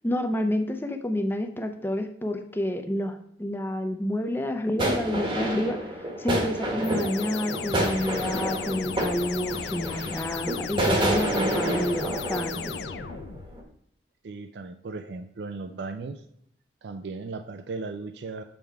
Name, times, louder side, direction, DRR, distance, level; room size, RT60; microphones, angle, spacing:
voice 1, 0.0-5.8 6.2-12.8, left 1 dB, 10° left, 6 dB, 0.5 m, -29 dB
sound 1, 4.8-13.3 13.6-13.7, right 1 dB, 25° right, 1.1 m, -29 dB
sound 2, 6.8-13.6, left 6 dB, 70° left, 0.4 m, -36 dB
voice 2, 14.2-16.2 16.8-18.4, right 3 dB, 70° right, 8 dB, 0.4 m, -36 dB
7.3 x 3.6 x 4.5 m, 0.71 s
head